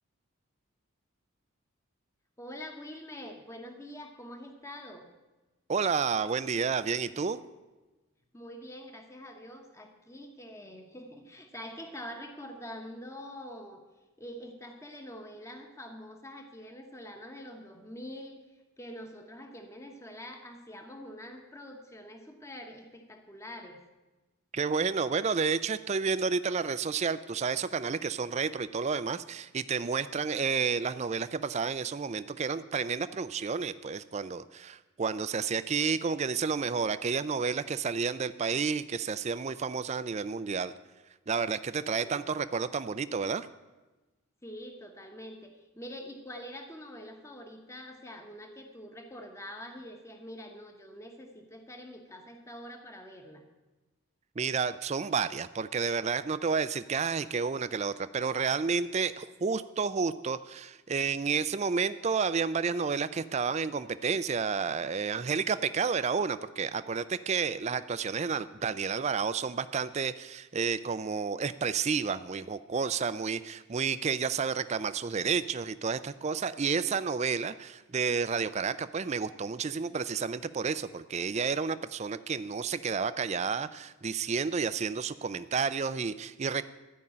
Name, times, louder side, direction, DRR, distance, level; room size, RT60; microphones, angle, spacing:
voice 1, 2.4-5.1 8.3-13.8 14.2-18.4 18.8-23.8 42.0-42.3 44.4-53.5, equal, 15° left, 4 dB, 1.0 m, -45 dB
voice 2, 5.7-7.4 24.5-40.7 41.3-43.5 54.4-86.6, right 5 dB, 30° right, 14 dB, 0.4 m, -31 dB
13.0 x 5.4 x 8.5 m, 1.1 s
head